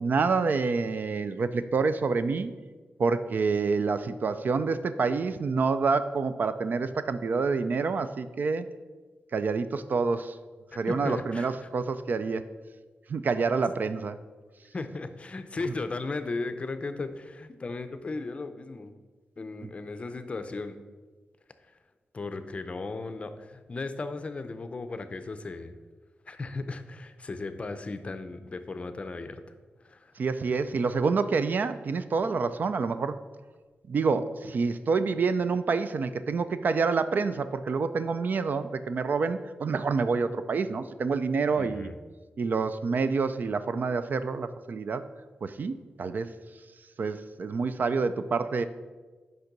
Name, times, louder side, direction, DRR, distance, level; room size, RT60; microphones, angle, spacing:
voice 1, 0.0-2.5 3.0-8.7 9.3-10.4 10.7-12.4 13.1-14.2 30.2-33.2 33.9-41.9 42.4-45.0 45.4-46.3 47.0-48.7, right 4 dB, 50° right, 12 dB, 0.4 m, -27 dB
voice 2, 10.7-11.6 14.7-18.9 19.4-20.8 22.1-25.7 26.3-29.4 29.8-30.1 41.5-42.0, left 3 dB, 30° left, 9 dB, 0.5 m, -36 dB
6.5 x 5.3 x 5.9 m, 1.3 s
wide cardioid pair, 150°, 4 cm